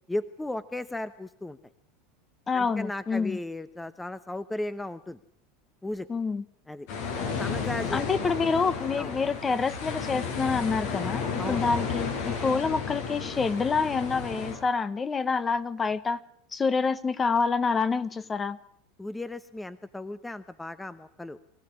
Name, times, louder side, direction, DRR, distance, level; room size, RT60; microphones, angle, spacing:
voice 1, 0.1-1.6 2.5-5.2 5.8-6.1 6.7-6.9 7.4-8.0 9.0-9.1 11.4-11.7 19.0-21.4, left 2 dB, 10° left, 14 dB, 1.0 m, -35 dB
voice 2, 2.5-3.4 6.1-6.4 7.9-16.2 16.5-18.6, left 5 dB, 25° left, 15 dB, 1.2 m, -27 dB
sound 1, 6.9-14.6, left 5 dB, 70° left, 6.4 m, -32 dB
24.0 x 16.0 x 9.6 m, 0.67 s
hypercardioid pair, 100°, 0 cm